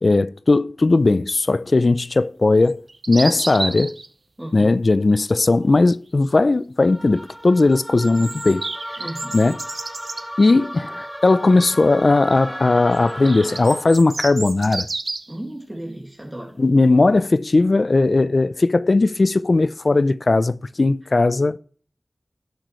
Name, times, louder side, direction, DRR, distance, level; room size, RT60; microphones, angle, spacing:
voice 1, 0.0-2.8 3.1-4.0 4.5-8.6 9.3-9.6 10.4-14.9 16.6-21.6, left 3 dB, 65° left, 0.4 m, -17 dB
sound 1, 2.7-4.1 7.7-10.2 12.9-15.4, right 3 dB, 85° right, 0.9 m, -31 dB
voice 2, 4.4-4.7 9.0-9.4 15.3-16.5, right 1 dB, 20° right, 2.0 m, -34 dB
sound 2, 6.8-14.1, equal, 5° right, 0.7 m, -35 dB
18.0 x 6.1 x 3.1 m
wide cardioid pair, 60°, 0 cm